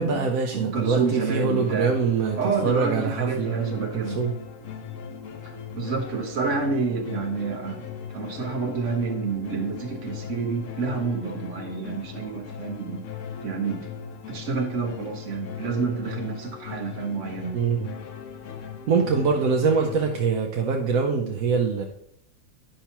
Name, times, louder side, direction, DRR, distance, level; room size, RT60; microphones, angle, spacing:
voice 1, 0.0-4.3 17.5-17.9 18.9-21.8, right 5 dB, 80° right, 2 dB, 1.1 m, -24 dB
voice 2, 0.5-2.0 2.3-4.2 5.4-13.0 13.4-13.9 14.3-17.6, right 4 dB, 60° right, 2 dB, 1.4 m, -29 dB
sound 1, 1.0-20.2, left 7 dB, 70° left, 1.1 m, -38 dB
10.0 x 5.6 x 2.9 m, 0.71 s
omnidirectional pair, 1.4 m